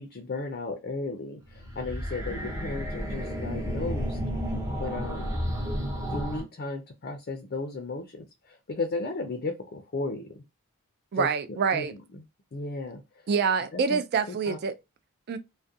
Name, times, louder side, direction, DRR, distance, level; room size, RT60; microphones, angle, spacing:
voice 1, 0.0-4.2 4.7-5.3 6.1-10.3 11.1-11.9 12.5-13.0 13.7-14.0 14.5-14.6, left 3 dB, 45° left, 0.4 m, -35 dB
sound 1, 1.5-6.4, equal, 15° right, 0.6 m, -32 dB
voice 2, 11.1-11.9 13.3-14.8 15.3-15.4, right 5 dB, 45° right, 0.3 m, -26 dB
2.3 x 2.1 x 2.6 m
head